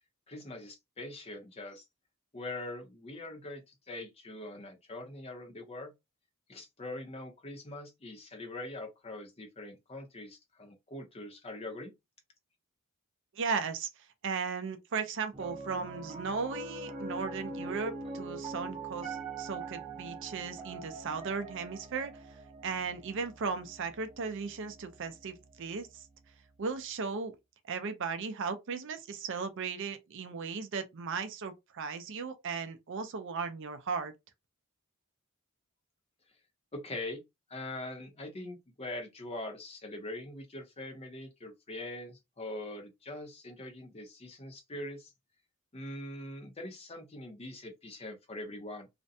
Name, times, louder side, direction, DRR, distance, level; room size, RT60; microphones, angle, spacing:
voice 1, 0.3-1.8 2.3-3.6 3.9-5.9 6.5-11.9 36.7-37.2 37.5-45.1 45.7-48.9, left 2 dB, 30° left, 0.6 m, -42 dB
voice 2, 13.3-13.9 14.2-22.1 22.6-26.1 26.6-27.3 27.7-34.1, right 5 dB, 55° right, 0.5 m, -36 dB
Piano, 15.3-25.7, right 3 dB, 25° right, 0.8 m, -43 dB
2.5 x 2.1 x 2.6 m
head